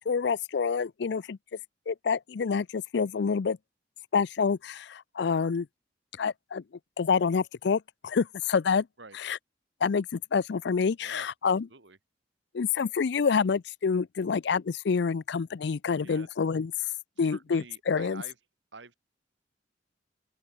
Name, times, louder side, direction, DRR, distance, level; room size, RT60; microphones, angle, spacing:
voice 1, 0.1-1.4 1.9-3.6 4.1-5.7 6.2-6.6 7.0-8.9 9.2-9.4 9.8-11.7 12.5-16.7 17.2-18.2, left 5 dB, 65° left, 0.4 m, -27 dB
voice 2, 11.0-12.0 16.0-16.3 17.2-18.4 18.7-18.9, right 4 dB, 75° right, 2.5 m, -48 dB
open air
head